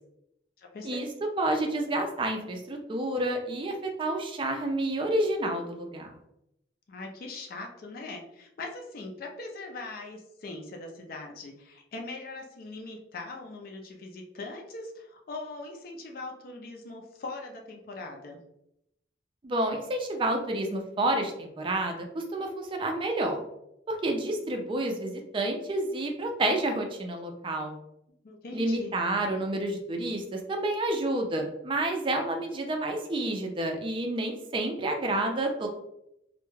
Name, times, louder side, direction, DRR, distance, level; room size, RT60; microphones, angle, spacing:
voice 1, 0.6-1.0 6.9-18.4 28.2-29.0, left 3 dB, 55° left, 1 dB, 0.4 m, -41 dB
voice 2, 1.4-6.1 19.4-23.4 23.9-27.8 28.5-35.7, right 1 dB, 30° right, 4 dB, 0.4 m, -29 dB
2.3 x 2.1 x 3.0 m, 0.81 s
head